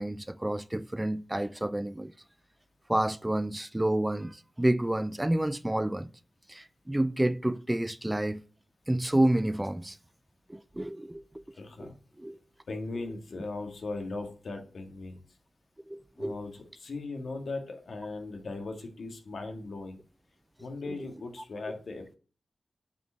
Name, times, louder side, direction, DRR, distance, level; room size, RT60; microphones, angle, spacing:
voice 1, 0.0-2.1 2.9-6.1 6.5-8.4 8.9-10.0 10.5-11.9 12.2-12.4 15.9-16.4 20.9-21.0, right 1 dB, 10° right, 0.4 m, -29 dB
voice 2, 11.6-11.9 12.7-15.2 16.2-20.0 20.6-22.2, left 3 dB, 80° left, 1.9 m, -38 dB
8.1 x 5.0 x 7.4 m
wide cardioid pair, 130°, 0 cm